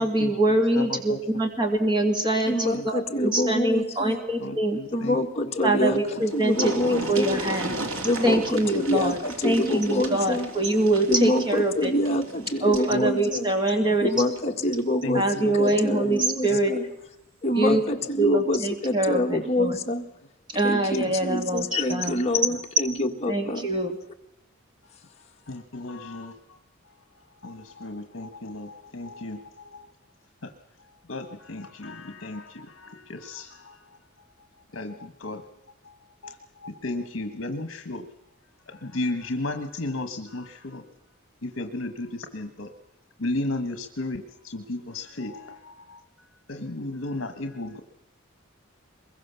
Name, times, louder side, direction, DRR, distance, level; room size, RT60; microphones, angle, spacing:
voice 1, 0.0-4.8 5.6-7.8 8.2-9.2 9.4-11.9 12.6-14.1 15.1-16.7 17.5-17.8 18.2-19.8 20.5-22.2 23.3-24.0, right 1 dB, 20° right, 2.2 m, -24 dB
voice 2, 0.7-1.2 2.7-2.8 4.4-5.2 5.8-6.0 8.3-8.4 12.9-13.1 14.1-14.2 15.0-15.5 16.0-16.1 16.5-16.6 17.7-18.1 21.0-21.1 25.5-26.6 27.4-29.9 30.4-30.5 31.1-33.8 34.7-35.5 35.8-36.0 36.2-36.4 36.6-38.1 38.7-40.8 41.4-42.7 43.2-47.8, left 2 dB, 65° left, 1.4 m, -34 dB
voice 3, 2.5-4.2 4.9-6.0 6.3-7.4 8.0-10.5 11.1-13.5 14.0-16.9 17.4-20.0 20.6-23.7, left 1 dB, 30° left, 1.7 m, -26 dB
sound 1, 5.8-5.9 6.1-12.9 14.2-14.4 14.8-14.9, right 1 dB, 85° right, 3.1 m, -35 dB
24.0 x 22.0 x 7.0 m
head